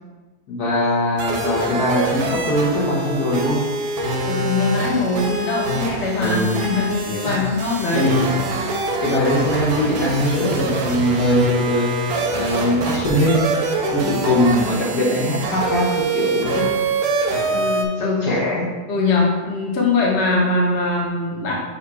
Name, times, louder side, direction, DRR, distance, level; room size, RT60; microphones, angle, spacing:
voice 1, 0.5-3.7 6.1-6.5 7.3-7.4 7.9-8.3 9.0-13.5 13.9-16.7 18.0-18.7, equal, 60° left, -4 dB, 1.8 m, -21 dB
sound 1, 1.2-17.8, right 2 dB, 65° right, 1.4 m, -25 dB
voice 2, 4.2-8.1 17.5-18.2 18.9-21.5, left 3 dB, 45° left, -2 dB, 1.0 m, -21 dB
7.4 x 2.8 x 4.7 m, 1.3 s
omnidirectional pair, 1.9 m